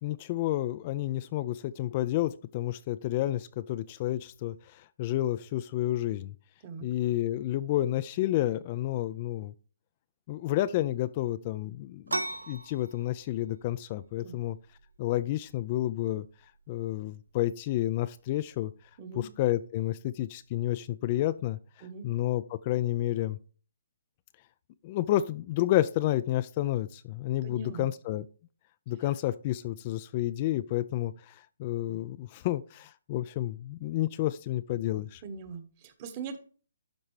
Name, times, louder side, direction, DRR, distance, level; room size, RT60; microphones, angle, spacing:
voice 1, 0.0-6.3 6.8-9.5 10.3-12.2 12.5-14.6 15.0-16.3 16.7-18.7 19.1-23.4 24.8-28.3 28.9-35.2, left 14 dB, 35° left, 15 dB, 0.3 m, -30 dB
sound 1, 12.1-21.5, right 2 dB, 85° right, 0.5 m, -43 dB
voice 2, 19.0-19.3 21.8-22.1 27.4-27.9 35.2-36.4, right 4 dB, 35° right, 9 dB, 1.2 m, -41 dB
11.5 x 4.3 x 3.2 m, 0.39 s
figure-of-eight pair, 145°, 0 cm